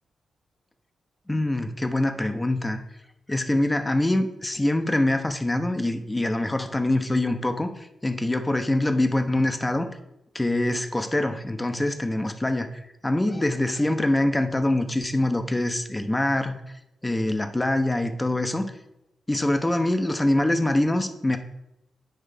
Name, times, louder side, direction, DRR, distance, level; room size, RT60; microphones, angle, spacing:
voice 1, 1.3-2.8 3.3-9.9 10.3-12.7 13.0-16.6 17.0-18.7 19.3-21.4, left 1 dB, 20° left, 8 dB, 0.8 m, -24 dB
8.9 x 3.2 x 5.1 m, 0.87 s
supercardioid pair, 45°, 0 cm